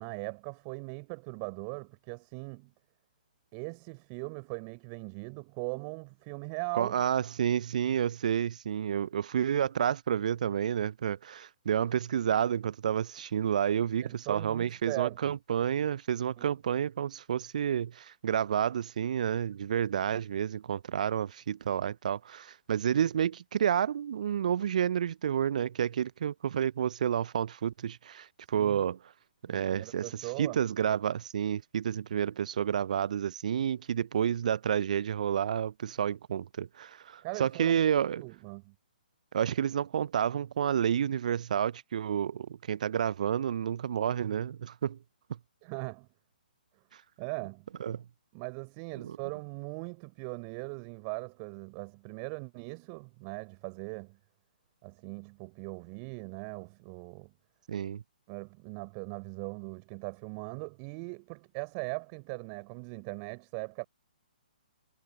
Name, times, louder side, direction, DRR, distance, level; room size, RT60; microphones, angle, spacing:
voice 1, 0.0-2.7 3.5-7.0 14.0-15.4 16.4-16.5 28.5-28.8 29.5-30.6 37.2-37.8 38.2-38.7 45.6-46.1 47.2-47.7 48.3-54.2 54.8-57.3 58.3-63.8, right 39 dB, 30° right, 5.4 m, -40 dB
voice 2, 6.7-29.0 29.4-38.2 39.3-45.0 47.8-48.0 49.0-49.2 57.7-58.0, right 9 dB, 50° right, 0.6 m, -30 dB
figure-of-eight pair, 130°, 5 cm